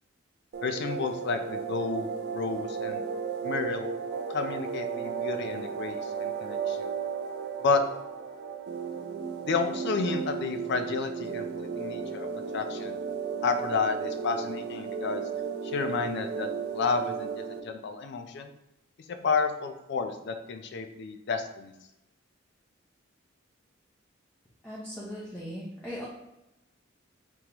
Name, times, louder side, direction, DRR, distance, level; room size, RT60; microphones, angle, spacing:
sound 1, 0.5-17.6, right 6 dB, 55° right, 0.3 m, -34 dB
voice 1, 0.6-3.0 3.4-3.9 4.3-6.9 7.6-7.8 9.4-12.3 12.5-13.0 13.4-15.2 15.6-18.5 19.1-21.7, left 4 dB, 60° left, 7 dB, 0.4 m, -31 dB
voice 2, 24.6-26.1, equal, 10° left, -8 dB, 0.6 m, -38 dB
3.7 x 3.0 x 2.9 m, 0.89 s
head